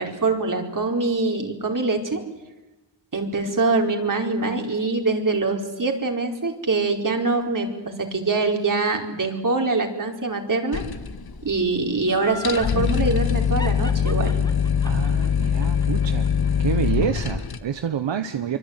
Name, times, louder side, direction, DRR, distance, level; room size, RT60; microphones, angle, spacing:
voice 1, 0.0-2.2 3.1-10.8 11.4-14.4, right 3 dB, 45° right, 3 dB, 4.7 m, -24 dB
sound 1, 10.7-11.7 12.0-12.1 12.3-17.6, left 7 dB, 55° left, 1.7 m, -23 dB
Laughter, 12.1-12.8 13.6-16.7 17.0-17.1, left 2 dB, 10° left, 1.9 m, -36 dB
voice 2, 14.8-16.3 16.6-18.6, right 8 dB, 85° right, 9 dB, 1.3 m, -27 dB
25.0 x 25.0 x 9.7 m, 1.1 s
wide cardioid pair, 90°, 43 cm